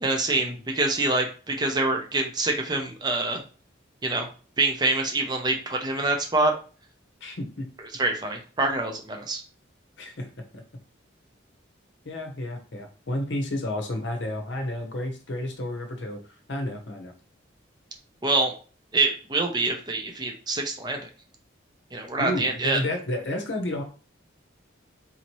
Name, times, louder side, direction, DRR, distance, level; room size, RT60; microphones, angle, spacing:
voice 1, 0.0-3.4 4.0-4.3 4.6-6.5 7.9-9.4 18.2-18.5 18.9-21.1 21.9-22.8, right 2 dB, 20° right, 3 dB, 0.5 m, -25 dB
voice 2, 7.2-7.7 10.0-10.3 12.0-16.2 16.5-17.1 22.2-23.8, left 1 dB, 70° left, 4 dB, 0.8 m, -31 dB
4.1 x 2.8 x 3.0 m, 0.37 s
head